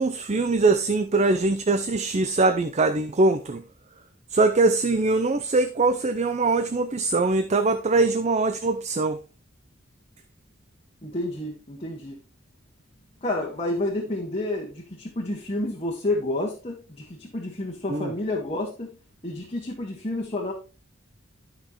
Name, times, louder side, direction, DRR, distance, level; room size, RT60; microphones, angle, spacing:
voice 1, 0.0-3.6 4.3-9.2 17.9-18.1, right 3 dB, 35° right, 0.5 m, -22 dB
voice 2, 11.0-12.2 13.2-18.9 19.2-20.5, left 1 dB, 30° left, 1.7 m, -30 dB
12.0 x 5.7 x 3.1 m
head